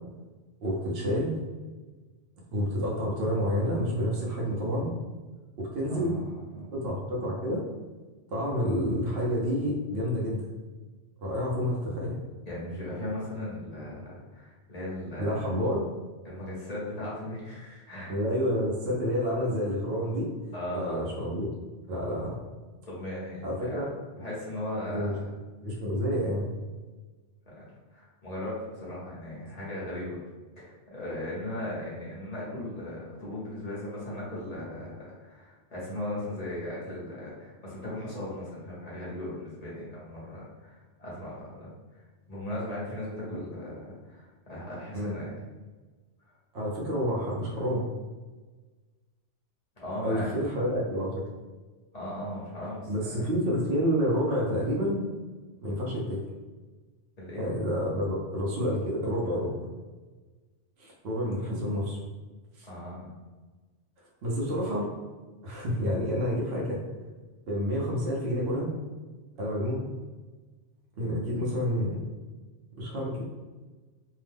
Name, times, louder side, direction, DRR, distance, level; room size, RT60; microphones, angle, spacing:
voice 1, 0.6-1.3 2.5-4.9 5.6-6.1 6.7-7.6 8.3-10.5 11.2-12.2 15.2-15.8 18.1-20.3 20.7-21.5 21.9-22.3 23.4-23.9 24.9-25.1 25.6-26.5 43.3-43.4 44.9-45.1 46.5-47.8 50.0-51.2 52.9-55.1 55.6-56.2 57.3-59.6 60.8-62.0 62.6-62.7 64.2-64.9 65.4-66.8 67.5-68.7 69.4-69.9 71.0-72.0 72.7-73.2, equal, 60° right, -3 dB, 0.8 m, -29 dB
voice 2, 5.9-6.7 12.5-15.5 16.2-18.1 20.5-21.1 22.9-23.9 24.1-25.3 25.7-25.8 27.5-27.6 27.9-30.2 30.6-45.4 49.8-50.3 51.9-53.3 57.2-57.5 62.6-63.1, left 1 dB, 35° left, -7 dB, 1.0 m, -37 dB
2.7 x 2.1 x 3.4 m, 1.3 s
omnidirectional pair, 1.2 m